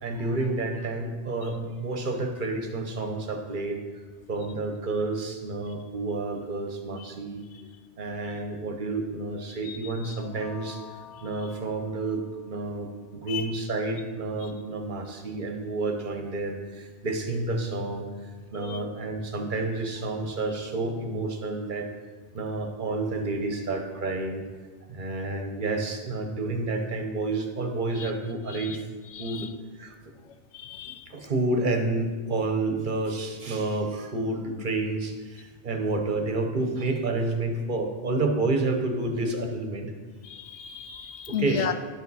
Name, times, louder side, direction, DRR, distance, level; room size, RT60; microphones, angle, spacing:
voice 1, 0.0-3.8 4.3-7.4 8.0-10.8 11.2-21.9 22.3-24.4 24.9-28.8 29.2-29.5 29.8-29.9 31.1-39.9 41.3-41.7, right 2 dB, 45° right, 4 dB, 1.0 m, -29 dB
voice 2, 9.6-10.1 13.3-13.5 14.4-14.5 18.7-18.8 28.0-28.1 28.5-28.8 29.1-29.5 30.5-31.1 40.2-41.7, left 8 dB, 80° left, 9 dB, 0.9 m, -35 dB
sound 1, 10.1-12.9, left 9 dB, 50° left, 2.3 m, -48 dB
10.0 x 6.9 x 4.1 m, 1.5 s
omnidirectional pair, 1.2 m